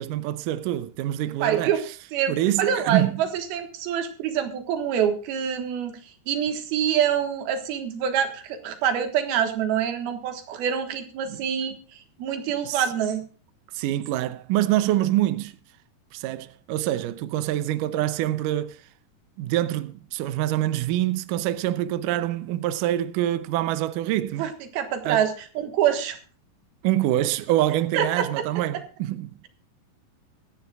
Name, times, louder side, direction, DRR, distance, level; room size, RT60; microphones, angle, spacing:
voice 1, 0.0-1.7 2.3-3.2 11.3-11.4 12.6-12.8 13.7-15.5 16.1-18.8 19.4-24.5 25.0-25.3 26.8-29.3, right 13 dB, 85° right, 1.8 m, -25 dB
voice 2, 1.4-1.8 2.1-6.0 6.3-13.2 24.4-26.2 27.9-28.5, right 9 dB, 70° right, 3.3 m, -26 dB
23.0 x 10.5 x 2.4 m
omnidirectional pair, 4.7 m